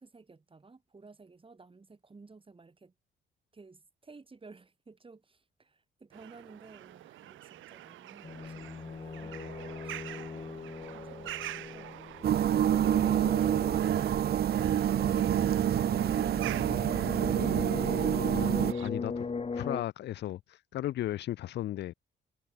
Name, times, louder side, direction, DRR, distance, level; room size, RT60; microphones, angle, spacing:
voice 1, 0.0-2.9 3.5-12.4, right 4 dB, 25° right, 7.2 m, -55 dB
sound 1, 6.1-18.9, right 14 dB, 80° right, 0.9 m, -46 dB
sound 2, 8.2-19.8, left 4 dB, 30° left, 2.6 m, -40 dB
sound 3, 12.2-18.7, right 10 dB, 50° right, 0.7 m, -27 dB
voice 2, 18.3-19.3 19.5-21.9, left 13 dB, 60° left, 0.5 m, -36 dB
cardioid pair, 90°, 20 cm